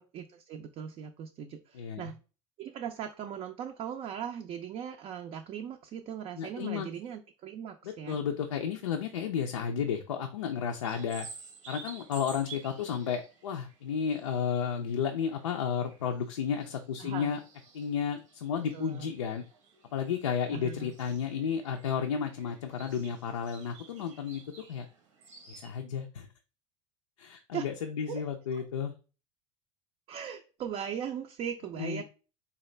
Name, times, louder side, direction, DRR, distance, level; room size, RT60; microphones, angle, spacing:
voice 1, 0.0-2.2 2.6-8.2 17.0-17.3 18.7-19.1 20.5-20.9 27.5-27.7 28.1-28.2 28.5-28.6 30.1-32.0, right 8 dB, 40° right, 4 dB, 0.4 m, -39 dB
voice 2, 1.7-2.1 6.4-6.9 7.8-11.3 11.7-17.4 17.7-19.5 19.9-24.4 24.7-24.8 25.5-26.3 27.2-28.9 31.8-32.0, left 7 dB, 85° left, 4 dB, 0.4 m, -32 dB
sound 1, 10.8-25.7, right 6 dB, 80° right, 0.9 m, -52 dB
4.0 x 2.3 x 3.1 m, 0.34 s
hypercardioid pair, 80°, 16 cm